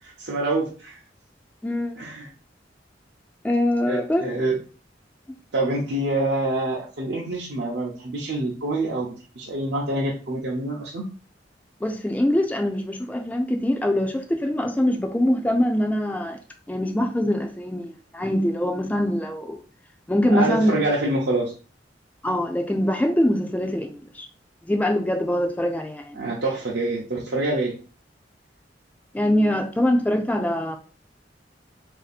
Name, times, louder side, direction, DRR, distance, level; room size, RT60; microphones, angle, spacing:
voice 1, 0.0-1.0 2.0-2.3 3.9-4.6 5.5-11.0 20.3-21.5 26.2-27.8, right 2 dB, 65° right, 0.7 m, -26 dB
voice 2, 1.6-2.0 3.4-4.3 11.8-16.4 16.7-19.6 20.1-20.8 22.2-24.3 24.7-26.2 29.1-30.8, left 1 dB, 10° left, 0.3 m, -23 dB
3.3 x 2.7 x 4.1 m
head